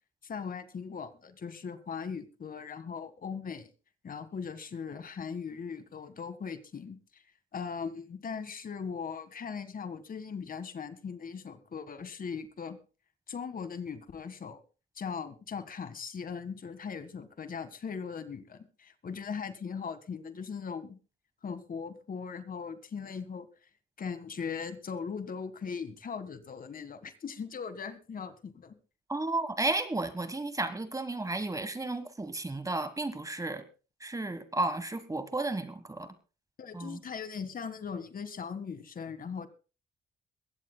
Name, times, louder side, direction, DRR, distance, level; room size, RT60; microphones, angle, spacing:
voice 1, 0.2-3.7 4.0-7.2 7.5-12.8 13.3-14.6 15.0-21.0 21.4-23.5 24.0-28.7 36.6-39.5, left 6 dB, 45° left, 11 dB, 1.8 m, -39 dB
voice 2, 29.1-33.6 34.0-36.1 36.7-37.0, right 2 dB, 15° right, 12 dB, 1.4 m, -33 dB
22.0 x 16.0 x 2.3 m, 0.33 s
cardioid pair, 90°, 20 cm